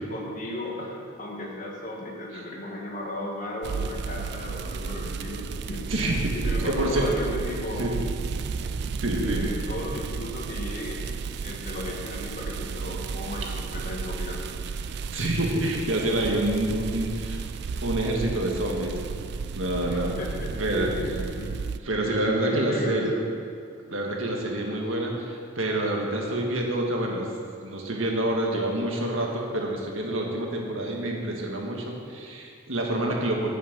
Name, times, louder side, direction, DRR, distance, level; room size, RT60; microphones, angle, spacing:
voice 1, 0.1-6.1 6.3-8.0 9.2-11.1 11.4-14.5 19.9-20.5 20.8-21.5 22.4-23.4, left 1 dB, 40° left, -1 dB, 1.6 m, -36 dB
sound 1, 3.6-21.8, right 5 dB, 55° right, 0.4 m, -33 dB
voice 2, 5.9-6.3 6.6-7.1 7.8-7.9 8.6-8.7 9.0-9.5 15.1-17.4 17.8-19.0 19.5-20.1 20.5-20.9 21.8-23.1 23.9-27.3 27.6-33.5, right 1 dB, 85° right, 0 dB, 1.7 m, -27 dB
9.1 x 6.5 x 7.5 m, 2.4 s
head